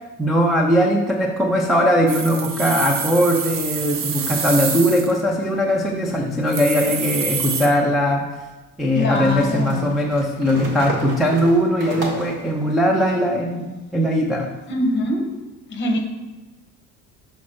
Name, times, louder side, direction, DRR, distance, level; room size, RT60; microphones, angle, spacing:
voice 1, 0.2-8.3 8.8-14.6, equal, ahead, -2 dB, 0.3 m, -20 dB
sound 1, 2.1-5.2 5.8-5.9 6.2-6.3 6.5-7.7, right 6 dB, 45° right, 0.7 m, -27 dB
sound 2, 7.1-7.2 9.1-12.5, right 2 dB, 75° right, 1.7 m, -31 dB
voice 2, 8.9-10.0 14.7-15.4 15.7-16.0, left 1 dB, 35° left, 2 dB, 1.1 m, -23 dB
6.2 x 4.2 x 6.0 m, 1.2 s
cardioid pair, 175°, 33 cm